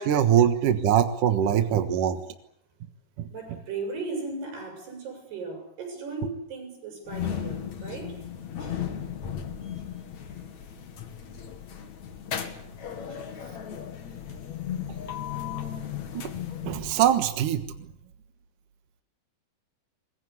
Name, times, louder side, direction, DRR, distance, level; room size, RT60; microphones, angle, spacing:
voice 1, 0.0-2.2 3.2-3.3 16.1-16.3 16.6-17.6, right 9 dB, 65° right, 8 dB, 2.6 m, -22 dB
voice 2, 3.3-8.2 8.6-8.8 10.3-10.4 13.1-13.5 14.0-14.2, right 3 dB, 80° right, 4 dB, 9.4 m, -37 dB
sound 1, 7.1-17.2, left 9 dB, 50° left, 3.1 m, -36 dB
25.0 x 22.5 x 8.4 m, 0.73 s
omnidirectional pair, 4.6 m